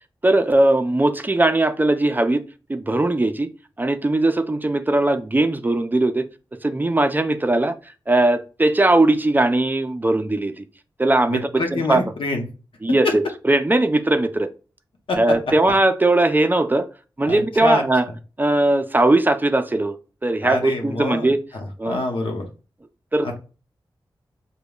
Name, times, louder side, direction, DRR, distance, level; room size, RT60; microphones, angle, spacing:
voice 1, 0.2-2.4 2.7-3.5 3.8-6.3 6.6-7.7 8.1-10.7 11.0-12.0 12.8-14.5 15.2-16.9 17.2-18.1 18.4-20.0 20.2-21.4 21.8-22.0 23.1-23.4, right 2 dB, 20° right, 8 dB, 0.4 m, -19 dB
voice 2, 11.3-12.5 15.1-15.2 17.2-17.8 20.4-22.5 23.2-23.4, left 2 dB, 80° left, 2 dB, 0.9 m, -26 dB
5.1 x 2.2 x 2.4 m, 0.34 s
cardioid pair, 65°, 9 cm